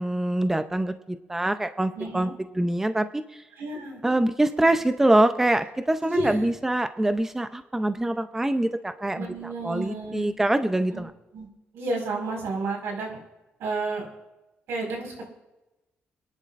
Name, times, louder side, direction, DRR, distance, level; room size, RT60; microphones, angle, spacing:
voice 1, 0.0-2.3 2.5-3.4 4.0-11.1, right 1 dB, 10° right, 9 dB, 0.6 m, -24 dB
voice 2, 1.9-2.3 3.5-4.0 6.0-6.5 9.1-10.3 10.9-11.0 11.3-11.5 11.7-13.2 13.6-14.1 14.7-15.2, right 2 dB, 80° right, -1 dB, 5.0 m, -31 dB
26.5 x 11.0 x 2.5 m, 1.0 s
cardioid pair, 120°, 4 cm